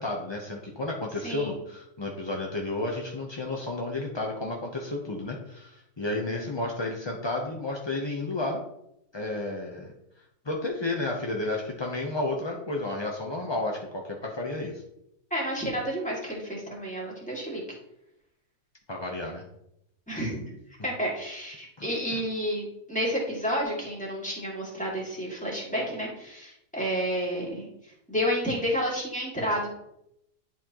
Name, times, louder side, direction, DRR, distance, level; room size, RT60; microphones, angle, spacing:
voice 1, 0.0-8.6 9.1-9.9 10.4-14.8 18.9-19.4 21.8-22.2, left 2 dB, 35° left, -1 dB, 0.4 m, -32 dB
voice 2, 1.2-1.6 15.3-17.6 20.1-20.4 20.8-27.7 28.1-29.7, equal, 5° left, -4 dB, 2.1 m, -30 dB
10.5 x 4.2 x 3.0 m, 0.81 s
omnidirectional pair, 1.7 m